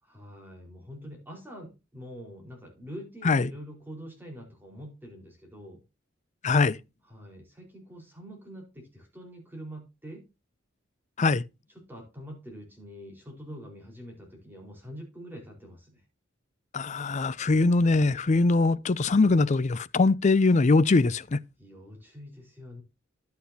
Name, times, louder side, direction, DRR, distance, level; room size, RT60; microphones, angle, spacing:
voice 1, 0.0-5.8 7.0-10.2 11.7-16.0 21.6-22.8, equal, 10° right, 4.6 m, -45 dB
voice 2, 6.4-6.8 11.2-11.4 16.7-21.4, left 3 dB, 35° left, 0.5 m, -22 dB
11.5 x 8.3 x 2.8 m
head